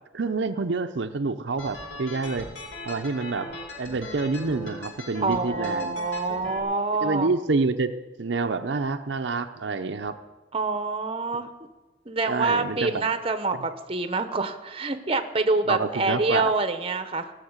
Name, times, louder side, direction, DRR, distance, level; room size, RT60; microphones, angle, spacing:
voice 1, 0.1-2.5 2.9-3.5 3.8-6.0 7.0-7.9 8.2-10.1 12.2-13.1 15.7-16.5, right 3 dB, 70° right, 7 dB, 0.6 m, -27 dB
sound 1, 1.6-6.6, left 1 dB, 85° left, 2.6 m, -39 dB
voice 2, 5.2-7.3 10.5-11.5 12.1-17.3, right 3 dB, 30° right, 9 dB, 0.8 m, -26 dB
17.0 x 6.6 x 8.0 m, 1.2 s
head